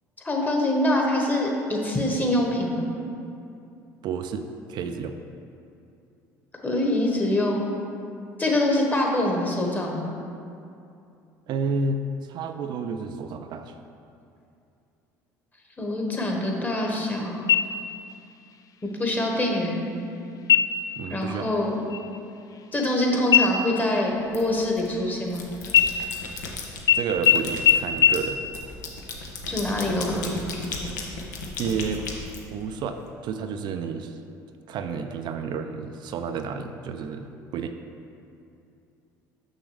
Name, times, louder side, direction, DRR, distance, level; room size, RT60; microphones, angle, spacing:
voice 1, 0.2-2.9 6.6-7.6 8.4-10.1 15.8-17.4 19.0-19.9 21.1-21.7 22.7-25.4 29.5-30.4, left 1 dB, 20° left, -1 dB, 1.3 m, -24 dB
voice 2, 4.0-5.1 11.5-12.0 12.3-13.8 21.0-21.5 26.9-28.5 31.6-32.0 32.5-34.2 34.7-37.7, right 5 dB, 55° right, 7 dB, 0.4 m, -31 dB
sound 1, 17.5-18.1 18.5-18.6 19.2-19.7 20.4-20.9 21.3-21.6 21.9-23.0 23.3-25.3 25.7-26.5 26.9-27.0 27.3-27.4 27.7-27.8 28.0-28.1, left 9 dB, 40° left, 0.4 m, -21 dB
sound 2, 24.3-24.9 25.3-26.8 27.2-33.0, left 3 dB, 85° left, 0.8 m, -36 dB
6.3 x 6.1 x 3.2 m, 2.6 s
hypercardioid pair, 65°, 9 cm